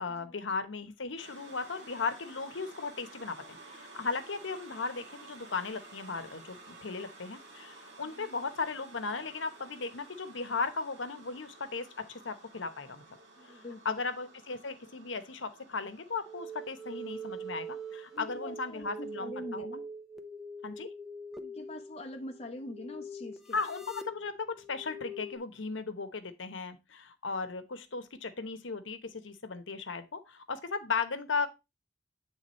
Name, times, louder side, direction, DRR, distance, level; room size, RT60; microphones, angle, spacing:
voice 1, 0.0-13.0 13.4-19.7 20.6-20.9 23.5-31.5, left 4 dB, 90° left, 0.9 m, -36 dB
sound 1, 1.2-19.2, right 3 dB, 65° right, 1.6 m, -53 dB
voice 2, 13.4-14.0 18.1-19.9 21.4-23.6, left 1 dB, 35° left, 0.8 m, -44 dB
sound 2, 16.2-25.4, right 1 dB, ahead, 0.6 m, -43 dB
8.5 x 3.6 x 4.2 m
head